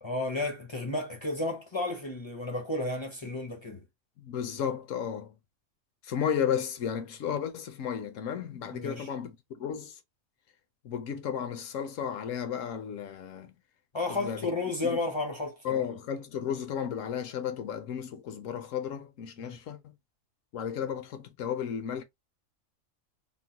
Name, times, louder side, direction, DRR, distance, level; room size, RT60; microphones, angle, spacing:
voice 1, 0.0-3.8 8.7-9.1 13.9-16.0 19.4-19.6, left 2 dB, 35° left, 0.5 m, -32 dB
voice 2, 4.2-5.3 6.0-10.0 10.8-13.5 14.1-14.4 14.8-15.0 15.6-19.9 20.5-22.0, left 8 dB, 75° left, 1.0 m, -33 dB
3.7 x 2.1 x 2.8 m
omnidirectional pair, 1.4 m